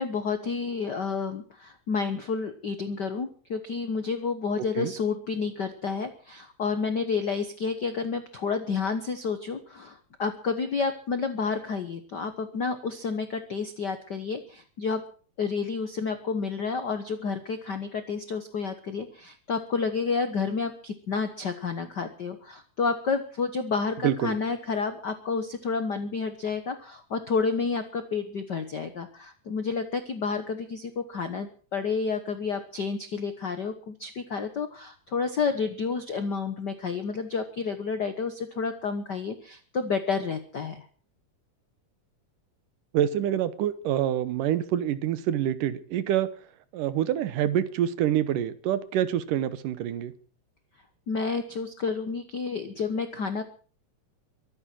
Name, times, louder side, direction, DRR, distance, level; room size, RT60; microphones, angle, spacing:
voice 1, 0.0-15.0 15.4-40.9 51.1-53.4, left 5 dB, 85° left, 0.9 m, -30 dB
voice 2, 24.0-24.4 42.9-46.3 46.7-50.1, right 11 dB, 75° right, 2.6 m, -26 dB
23.5 x 9.7 x 6.1 m
omnidirectional pair, 3.9 m